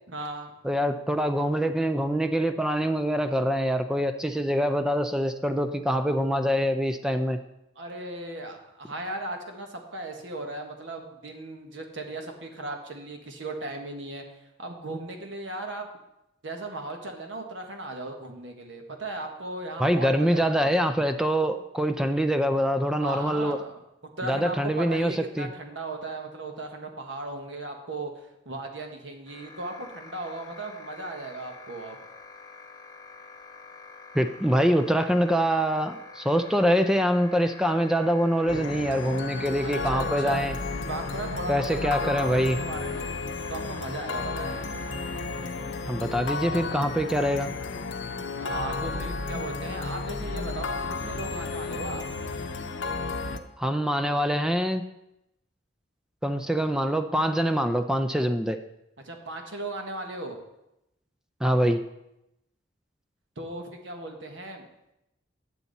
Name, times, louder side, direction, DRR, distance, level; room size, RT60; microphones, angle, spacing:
voice 1, 0.1-0.5 7.8-14.2 14.6-15.9 16.4-20.7 23.0-23.8 24.2-32.0 39.6-40.4 40.8-43.1 43.5-44.6 48.4-52.0 59.0-60.4 63.4-64.7, right 2 dB, 85° right, 3 dB, 1.4 m, -37 dB
voice 2, 0.6-7.4 19.8-23.6 24.2-25.5 34.1-40.6 41.5-42.6 45.9-47.5 53.6-54.8 56.2-58.6 61.4-61.8, equal, 5° right, 8 dB, 0.3 m, -24 dB
sound 1, 29.3-45.5, left 4 dB, 20° left, 1.1 m, -47 dB
sound 2, 38.5-53.4, left 3 dB, 80° left, 0.7 m, -33 dB
10.0 x 7.0 x 4.0 m, 0.87 s
head